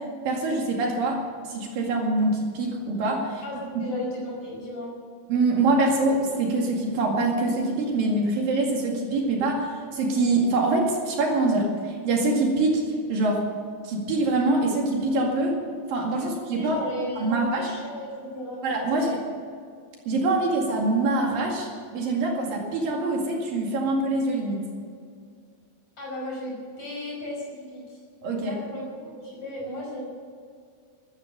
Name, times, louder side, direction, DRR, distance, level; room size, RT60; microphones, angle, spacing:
voice 1, 0.2-3.4 3.8-3.9 5.3-12.8 13.1-13.4 13.8-15.6 15.9-16.8 17.2-17.7 18.6-19.2 20.1-24.6 28.2-28.5, right 2 dB, 65° right, 0 dB, 3.8 m, -24 dB
voice 2, 3.4-4.9 16.2-18.6 18.9-19.2 26.0-28.0 28.4-30.0, left 1 dB, 40° left, -3 dB, 6.3 m, -35 dB
13.5 x 13.5 x 6.8 m, 2.2 s
omnidirectional pair, 4.4 m